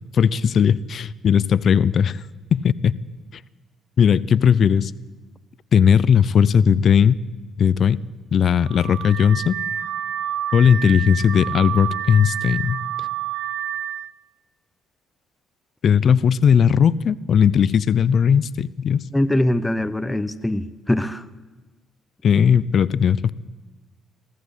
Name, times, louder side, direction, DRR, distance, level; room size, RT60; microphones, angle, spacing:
voice 1, 0.1-2.2 2.5-2.9 4.0-4.9 5.7-7.2 7.6-8.0 8.3-9.5 10.5-12.8 15.8-19.0 22.2-23.3, left 7 dB, 55° left, 19 dB, 0.7 m, -17 dB
Car / Alarm, 8.6-14.1, right 10 dB, 75° right, 0.6 m, -29 dB
voice 2, 19.1-21.2, left 1 dB, 10° left, 12 dB, 1.0 m, -22 dB
22.5 x 14.5 x 8.3 m, 1.2 s
supercardioid pair, 70°, 0 cm